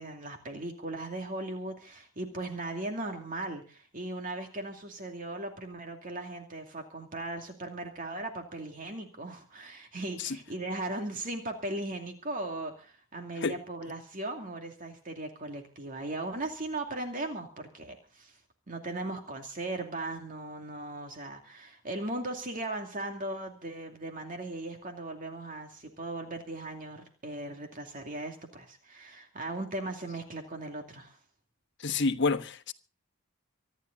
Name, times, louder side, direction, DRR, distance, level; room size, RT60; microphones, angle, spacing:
voice 1, 0.0-18.4 18.7-31.2, right 2 dB, 40° right, 2.5 m, -38 dB
voice 2, 31.8-32.7, left 4 dB, 55° left, 1.3 m, -28 dB
25.5 x 11.5 x 4.0 m
head